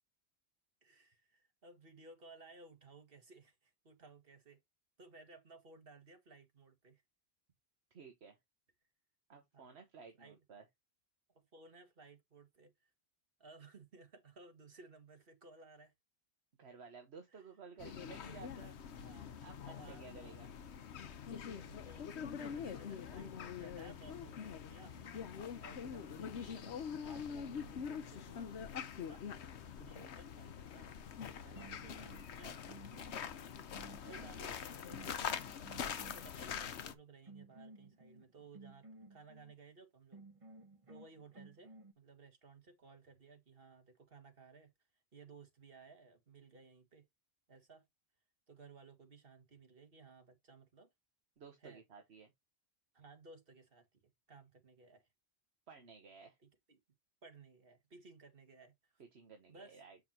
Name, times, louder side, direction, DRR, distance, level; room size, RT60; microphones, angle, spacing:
voice 1, 0.8-4.6 5.0-7.0 9.5-9.7 10.2-10.4 11.3-12.9 13.4-15.9 17.3-17.4 19.0-20.4 21.4-25.0 25.6-29.2 29.8-31.0 31.3-32.6 33.7-35.2 35.7-40.2 40.9-44.7 45.1-47.1 47.5-47.9 48.5-50.9 51.6-51.8 52.9-54.0 54.3-55.1 56.4-56.8 57.2-58.9 59.5-59.8, right 4 dB, 55° right, 2.1 m, -59 dB
voice 2, 7.9-8.4 9.3-10.6 16.6-18.8 19.4-20.5 25.6-25.7 34.0-34.6 51.4-52.3 55.7-56.4 59.0-60.0, right 5 dB, 70° right, 1.4 m, -55 dB
sound 1, 17.8-36.9, left 7 dB, 80° left, 1.1 m, -44 dB
sound 2, 24.9-27.6 31.1-31.3 31.6-36.7 37.3-39.5 40.1-41.9, right 2 dB, 30° right, 1.1 m, -57 dB
7.5 x 5.6 x 2.8 m
omnidirectional pair, 1.1 m